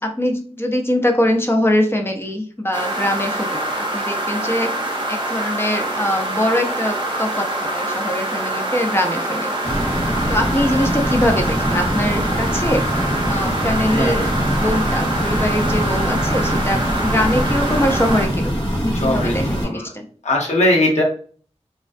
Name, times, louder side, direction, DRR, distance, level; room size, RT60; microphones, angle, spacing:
voice 1, 0.0-4.7 5.1-9.8 10.3-12.8 13.3-20.0, left 1 dB, 20° left, 3 dB, 0.5 m, -22 dB
sound 1, 2.7-18.3, right 1 dB, 45° right, 0.6 m, -25 dB
sound 2, 9.6-19.6, equal, 40° left, 1.0 m, -23 dB
voice 2, 13.9-14.3 18.9-19.8 20.2-21.0, left 1 dB, 75° left, -2 dB, 0.8 m, -20 dB
2.3 x 2.2 x 2.4 m, 0.43 s
wide cardioid pair, 70°, 12 cm